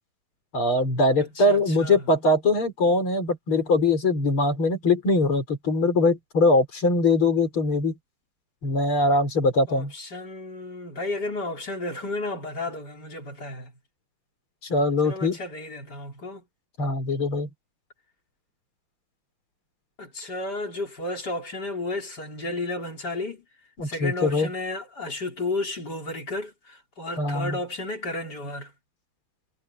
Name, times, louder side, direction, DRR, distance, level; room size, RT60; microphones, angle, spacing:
voice 1, 0.5-7.9 8.6-9.9 14.6-15.4 16.8-17.5 23.8-24.5 27.2-27.6, left 2 dB, 85° left, 5.4 m, -22 dB
voice 2, 1.2-2.1 9.7-13.7 15.0-16.4 20.0-23.4 23.8-28.7, left 2 dB, 50° left, 4.9 m, -33 dB
omnidirectional pair, 2.3 m